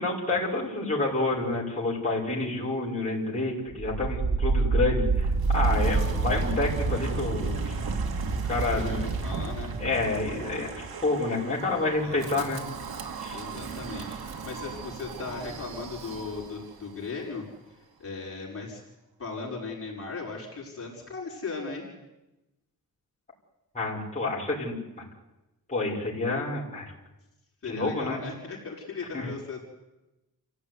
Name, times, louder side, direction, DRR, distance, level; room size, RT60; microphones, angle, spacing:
voice 1, 0.0-7.7 8.5-9.0 9.8-12.6 13.2-13.4 23.7-25.0 25.7-26.9 27.7-28.2 29.1-29.3, left 2 dB, 20° left, -4 dB, 6.3 m, -29 dB
Wind, 3.7-16.7, right 4 dB, 80° right, 2.2 m, -30 dB
voice 2, 8.5-9.8 12.0-12.5 13.3-17.5 18.0-18.8 19.2-21.9 27.6-29.6, left 4 dB, 40° left, -3 dB, 5.7 m, -37 dB
29.0 x 16.5 x 9.8 m, 1.0 s
wide cardioid pair, 175°, 36 cm